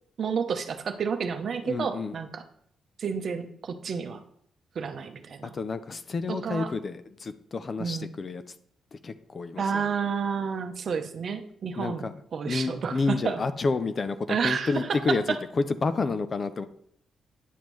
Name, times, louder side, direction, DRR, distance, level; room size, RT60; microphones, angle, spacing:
voice 1, 0.2-2.4 3.0-4.2 4.7-5.5 6.3-6.7 7.8-8.1 9.6-13.4 14.3-15.4, right 6 dB, 50° right, 7 dB, 0.8 m, -30 dB
voice 2, 1.6-2.2 5.4-8.4 8.9-9.9 11.8-12.1 12.4-16.7, left 4 dB, 35° left, 11 dB, 0.5 m, -30 dB
10.0 x 7.2 x 3.1 m, 0.66 s
cardioid pair, 140°, 0 cm